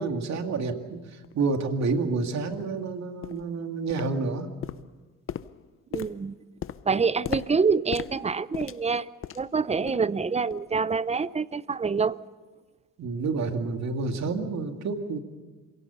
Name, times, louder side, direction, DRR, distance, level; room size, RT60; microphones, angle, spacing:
voice 1, 0.0-4.5 13.0-15.2, right 4 dB, 65° right, 5 dB, 2.3 m, -29 dB
sound 1, 1.2-1.3 1.9-2.0 2.5-2.7 3.2-3.5 3.9-4.3 4.6-9.6 9.9-10.1 10.5-10.7 11.2-11.3, left 9 dB, 45° left, 0.7 m, -38 dB
voice 2, 5.9-6.4 6.9-9.1 9.4-12.2, right 5 dB, 20° right, 17 dB, 0.6 m, -26 dB
27.0 x 17.0 x 6.9 m, 1.3 s
cardioid pair, 90°, 30 cm